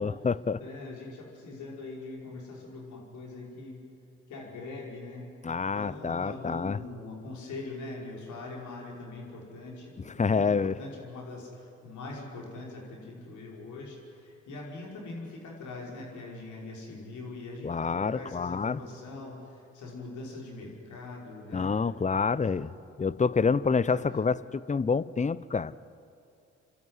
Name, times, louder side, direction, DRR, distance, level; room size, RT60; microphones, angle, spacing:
voice 1, 0.0-0.6 5.4-6.8 10.2-10.7 17.6-18.8 21.5-22.7 23.0-25.9, left 5 dB, 25° left, 18 dB, 0.7 m, -27 dB
voice 2, 0.6-3.8 4.3-5.3 5.7-21.7 22.3-22.4 23.8-24.1, left 2 dB, 75° left, -2 dB, 5.3 m, -42 dB
29.5 x 12.5 x 9.8 m, 2.5 s
supercardioid pair, 50°, 30 cm